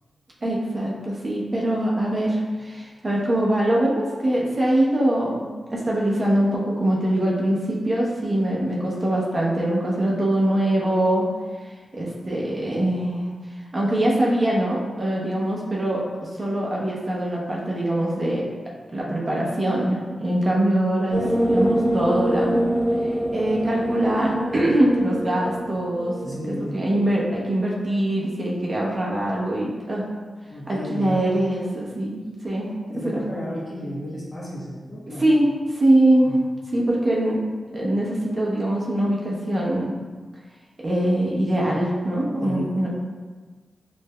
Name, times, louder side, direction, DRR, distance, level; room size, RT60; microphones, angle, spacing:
voice 1, 0.4-11.3 11.6-13.3 13.7-18.4 18.9-22.6 23.3-30.1 30.7-33.2 35.2-36.4 36.7-37.4 37.7-39.9 40.8-42.9, right 1 dB, 40° right, -4 dB, 0.9 m, -23 dB
sound 1, 21.1-27.5, equal, 5° right, 0.5 m, -25 dB
voice 2, 26.2-26.8 30.5-31.2 32.9-35.3 36.2-36.4 42.4-42.6, equal, 35° left, -6 dB, 1.1 m, -33 dB
5.4 x 2.6 x 2.2 m, 1.4 s
cardioid pair, 60°, 0 cm